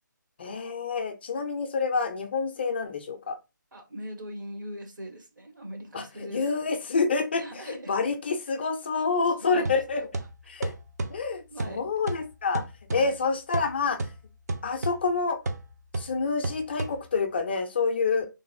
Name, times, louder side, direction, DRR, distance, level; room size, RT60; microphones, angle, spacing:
voice 1, 0.4-3.4 5.9-10.1 10.5-10.7 11.1-12.6 12.9-14.1 14.6-15.4 15.9-18.3, left 4 dB, 30° left, 7 dB, 0.4 m, -28 dB
voice 2, 3.7-6.4 7.4-7.9 9.4-9.8 10.6-10.7 11.5-11.8 12.9-13.2, equal, 70° right, 4 dB, 1.3 m, -40 dB
sound 1, 9.7-17.4, right 2 dB, 55° right, 0.5 m, -35 dB
3.2 x 2.5 x 2.7 m, 0.26 s
figure-of-eight pair, 150°, 11 cm